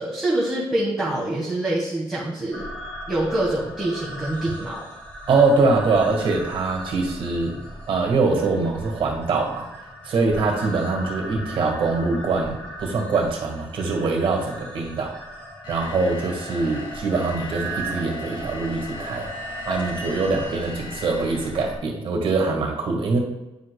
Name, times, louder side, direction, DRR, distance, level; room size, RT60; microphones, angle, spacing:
voice 1, 0.0-2.7 3.1-4.9, right 1 dB, 5° right, -6 dB, 1.4 m, -25 dB
sound 1, 2.5-21.8, right 1 dB, 20° left, 2.2 m, -37 dB
voice 2, 5.3-7.5 7.9-9.7 10.0-15.2 15.7-19.3 19.6-23.2, right 3 dB, 60° right, 1 dB, 1.6 m, -23 dB
sound 2, 15.6-21.8, left 3 dB, 50° left, 1.6 m, -39 dB
9.2 x 4.9 x 2.2 m, 0.98 s
cardioid pair, 105°, 10 cm